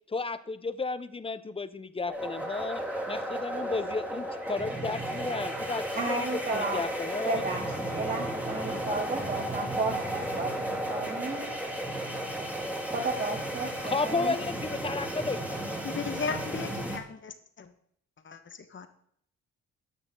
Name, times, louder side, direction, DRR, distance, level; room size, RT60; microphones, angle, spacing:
voice 1, 0.1-2.8 3.1-7.4 13.8-15.8, left 4 dB, 20° left, 14 dB, 0.9 m, -33 dB
sound 1, 2.1-17.0, right 1 dB, 5° right, 3.4 m, -34 dB
voice 2, 5.9-6.8 7.2-7.6 7.9-11.4 12.9-14.4, right 3 dB, 35° right, -5 dB, 5.9 m, -33 dB
voice 3, 15.8-17.7, left 5 dB, 40° left, 8 dB, 1.6 m, -35 dB
14.0 x 9.8 x 3.9 m, 0.66 s
cardioid pair, 90°, 30 cm